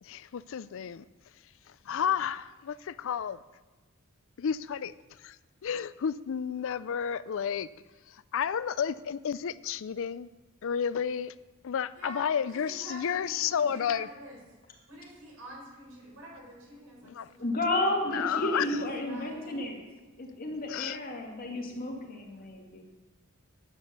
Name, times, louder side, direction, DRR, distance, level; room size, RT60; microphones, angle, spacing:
voice 1, 0.0-1.0 1.7-3.4 4.4-4.9 5.2-5.4 5.6-7.7 8.1-10.3 10.6-11.3 11.6-14.1 17.0-17.3 18.1-18.8 20.7-21.0, left 8 dB, 65° left, 17 dB, 0.4 m, -31 dB
voice 2, 11.9-14.4 14.9-17.9 18.6-19.7, right 1 dB, 75° right, -2 dB, 4.4 m, -47 dB
voice 3, 17.4-19.8 20.2-22.8, left 1 dB, 40° left, 0 dB, 2.0 m, -32 dB
9.6 x 9.4 x 6.7 m, 1.2 s
head